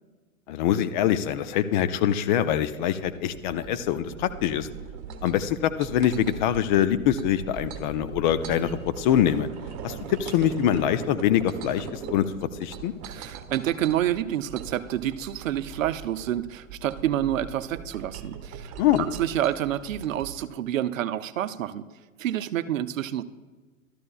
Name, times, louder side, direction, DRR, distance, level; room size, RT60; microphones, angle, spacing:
voice 1, 0.5-4.7 5.2-9.5 9.8-12.3 12.6-12.9 18.8-19.0, left 10 dB, 35° left, 12 dB, 0.5 m, -24 dB
sound 1, 1.2-20.5, right 6 dB, 40° right, 1.4 m, -41 dB
voice 2, 13.0-21.8 22.2-23.2, right 11 dB, 65° right, 13 dB, 0.7 m, -28 dB
13.0 x 13.0 x 2.3 m, 1.3 s
hypercardioid pair, 105°, 41 cm